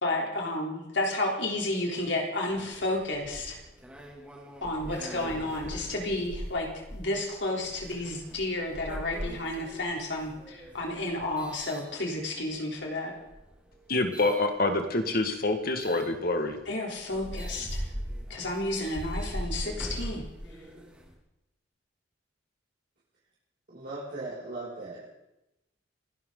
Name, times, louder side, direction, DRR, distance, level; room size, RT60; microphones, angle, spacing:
voice 1, 0.0-3.6 4.6-13.2 16.7-17.9 18.3-20.2, left 1 dB, 65° left, 0 dB, 3.7 m, -31 dB
sound 1, 2.5-12.5 13.2-14.4 15.8-16.1 16.6-16.7 17.0-21.1, equal, 5° right, 2.7 m, -40 dB
voice 2, 13.9-16.6, left 2 dB, 50° left, 6 dB, 2.0 m, -26 dB
voice 3, 23.7-25.1, right 2 dB, 55° right, -10 dB, 6.6 m, -38 dB
29.5 x 12.0 x 4.0 m, 0.94 s
head